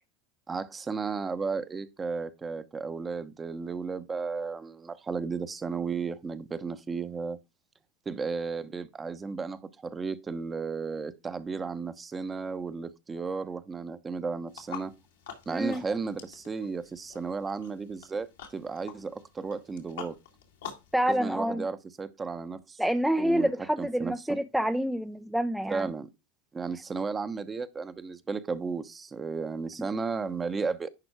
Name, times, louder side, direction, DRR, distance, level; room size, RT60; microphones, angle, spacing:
voice 1, 0.5-7.4 8.1-14.9 15.5-20.1 21.0-22.8 23.2-23.5 23.8-24.1 25.7-26.1 26.5-30.9, right 4 dB, 20° right, 0.9 m, -34 dB
sound 1, 14.5-20.9, left 8 dB, 80° left, 2.1 m, -46 dB
voice 2, 15.5-15.8 20.9-21.6 22.8-25.9, equal, ahead, 0.6 m, -27 dB
11.0 x 4.4 x 4.7 m
hypercardioid pair, 85°, 0 cm